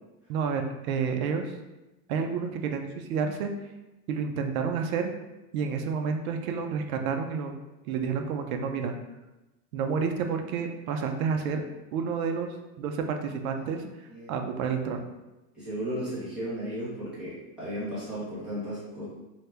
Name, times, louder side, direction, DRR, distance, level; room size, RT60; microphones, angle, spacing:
voice 1, 0.3-1.5 2.1-3.5 4.1-5.1 5.5-7.5 7.8-9.0 9.7-11.6 11.9-13.8 14.3-15.0, right 6 dB, 65° right, 5 dB, 0.5 m, -30 dB
voice 2, 13.6-14.5 15.5-19.0, equal, ahead, -13 dB, 1.0 m, -35 dB
2.9 x 2.3 x 3.3 m, 1.0 s
supercardioid pair, 160°, 46 cm